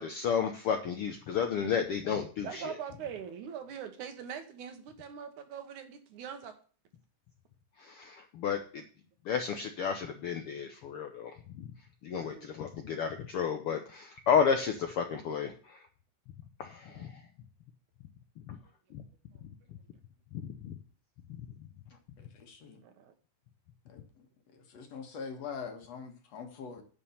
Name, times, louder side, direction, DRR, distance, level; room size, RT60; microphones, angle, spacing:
voice 1, 0.0-2.7 7.8-8.8 9.2-11.7 12.0-15.8 16.6-17.2 18.5-18.6 18.9-19.0 20.3-20.7, left 7 dB, 90° left, 6 dB, 1.2 m, -32 dB
voice 2, 2.4-6.5 12.2-12.5 16.9-17.1 22.8-23.1, right 8 dB, 70° right, 7 dB, 2.6 m, -42 dB
voice 3, 22.3-22.8 23.9-24.0 24.7-26.8, left 6 dB, 55° left, 4 dB, 2.4 m, -42 dB
9.8 x 5.4 x 6.9 m, 0.41 s
omnidirectional pair, 3.8 m